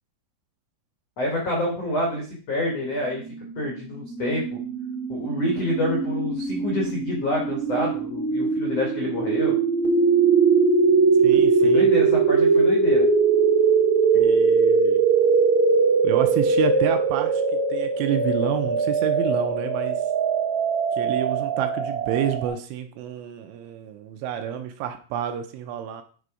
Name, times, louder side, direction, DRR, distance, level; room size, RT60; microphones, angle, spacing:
voice 1, 1.2-3.2 3.5-4.5 5.1-9.6 11.3-13.1, left 1 dB, 90° left, -1 dB, 1.4 m, -27 dB
sound 1, 3.3-22.5, right 5 dB, 65° right, 1.8 m, -21 dB
voice 2, 11.2-11.9 14.1-15.0 16.0-17.4 17.7-20.0 20.9-26.0, right 10 dB, 80° right, 6 dB, 3.0 m, -29 dB
9.8 x 4.0 x 4.8 m, 0.40 s
omnidirectional pair, 5.8 m